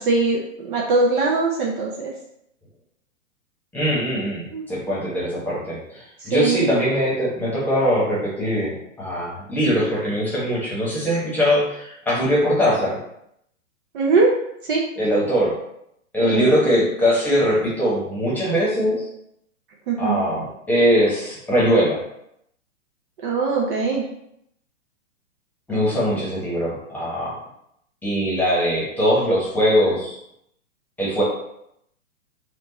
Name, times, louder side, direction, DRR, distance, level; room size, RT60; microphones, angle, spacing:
voice 1, 0.1-1.9 4.5-4.6 6.3-6.6 13.9-14.3 14.7-14.8 16.2-16.5 19.9-20.2 23.2-24.0, right 3 dB, 40° right, -2 dB, 0.6 m, -20 dB
voice 2, 3.7-13.0 15.0-15.5 16.1-19.1 20.0-22.0 25.7-27.4 28.0-30.2 31.0-31.2, equal, 5° left, -7 dB, 1.1 m, -21 dB
4.4 x 2.5 x 3.9 m, 0.76 s
hypercardioid pair, 150°, 40 cm